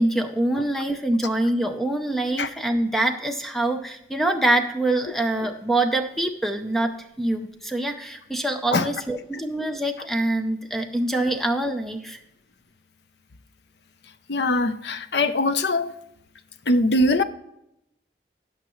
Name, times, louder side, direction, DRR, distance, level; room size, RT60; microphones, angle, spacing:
voice 1, 0.0-6.9 7.2-12.2, right 1 dB, ahead, 0.6 m, -25 dB
voice 2, 14.3-15.9 16.7-17.2, left 2 dB, 70° left, 0.7 m, -21 dB
17.0 x 6.0 x 3.1 m
head